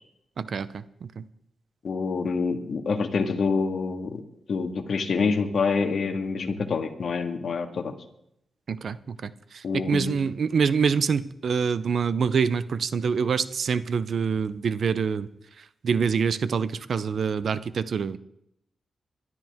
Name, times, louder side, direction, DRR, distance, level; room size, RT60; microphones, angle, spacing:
voice 1, 0.4-1.2 8.7-15.3 15.8-18.2, right 6 dB, 65° right, 15 dB, 0.7 m, -26 dB
voice 2, 1.8-4.1 4.5-7.9 9.6-10.1, left 4 dB, 65° left, 5 dB, 1.8 m, -26 dB
22.0 x 12.5 x 3.6 m, 0.78 s
cardioid pair, 65°, 0 cm